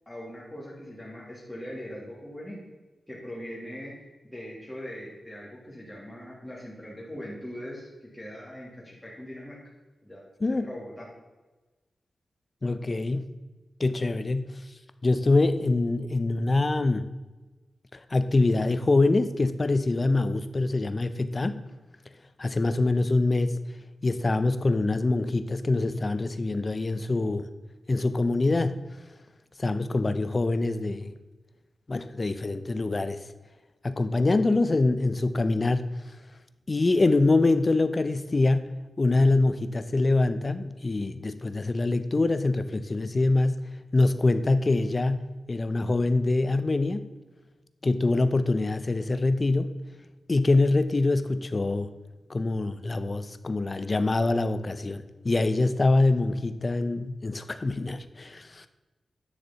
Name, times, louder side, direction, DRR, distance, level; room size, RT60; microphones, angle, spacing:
voice 1, 0.1-2.6 3.1-3.9 4.2-9.6 10.0-10.2 10.5-11.1, equal, 5° left, -7 dB, 1.9 m, -41 dB
voice 2, 10.4-10.7 12.6-13.3 13.8-14.6 15.0-17.1 18.1-21.6 22.4-23.6 24.0-27.5 27.9-28.8 29.6-31.1 31.9-33.2 33.8-35.9 36.7-47.1 47.8-49.8 50.3-51.9 52.3-58.7, left 2 dB, 30° left, 11 dB, 0.5 m, -24 dB
9.3 x 6.5 x 4.0 m, 1.2 s
wide cardioid pair, 115°, 0 cm